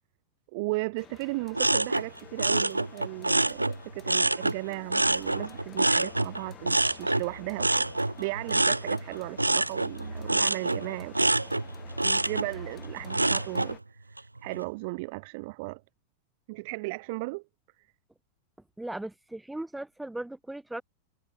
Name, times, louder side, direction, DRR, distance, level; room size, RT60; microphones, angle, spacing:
voice 1, 0.5-7.8 8.2-11.3 12.2-14.0 14.4-15.8 16.5-17.4, right 26 dB, 50° right, 2.3 m, -36 dB
sound 1, 1.0-13.8, left 11 dB, 30° left, 5.7 m, -51 dB
sound 2, 1.5-4.6 4.9-13.7 14.2-14.6, right 2 dB, 85° right, 0.6 m, -27 dB
voice 2, 18.8-20.8, right 1 dB, 5° right, 3.0 m, -38 dB
figure-of-eight pair, 90°, 0 cm